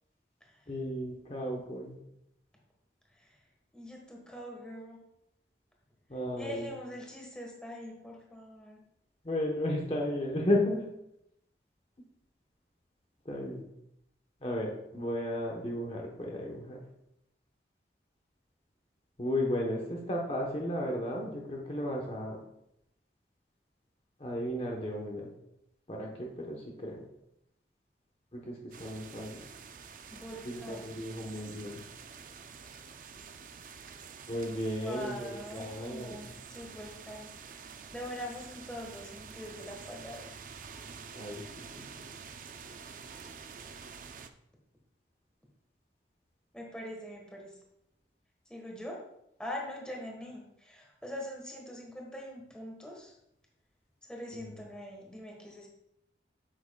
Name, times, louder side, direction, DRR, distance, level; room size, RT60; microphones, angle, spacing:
voice 1, 0.7-2.0 6.1-6.7 9.2-10.9 13.2-13.6 14.4-16.8 19.2-22.4 24.2-25.3 25.9-27.1 28.3-29.5 30.4-31.8 34.3-36.2 41.1-41.9 54.4-54.5, left 1 dB, 35° left, -1 dB, 0.9 m, -34 dB
voice 2, 3.7-5.0 6.4-8.8 30.1-31.0 34.8-37.3 37.9-40.4 46.5-47.6 48.5-49.0 49.4-53.1 54.1-55.7, left 1 dB, 5° left, -1 dB, 1.3 m, -43 dB
sound 1, 28.7-44.3, right 6 dB, 45° right, 0.4 m, -48 dB
8.6 x 7.4 x 2.3 m, 0.81 s
head